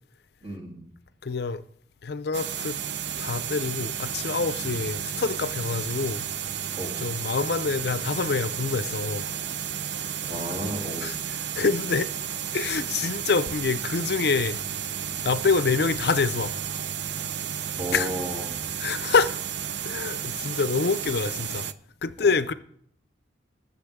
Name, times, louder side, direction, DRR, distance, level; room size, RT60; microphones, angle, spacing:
voice 1, 0.4-0.9 4.6-4.8 6.8-6.9 10.2-11.1 17.8-18.6 22.2-22.4, right 1 dB, 30° right, 3.0 m, -33 dB
voice 2, 1.2-1.6 2.0-2.8 3.2-6.2 7.0-9.3 11.0-11.2 11.5-12.1 12.5-14.6 15.2-16.5 17.9-18.1 18.8-19.3 19.8-21.7 22.0-22.5, left 4 dB, 60° left, 0.5 m, -26 dB
sound 1, 2.3-21.7, right 9 dB, 65° right, 0.5 m, -32 dB
21.0 x 7.2 x 3.6 m
head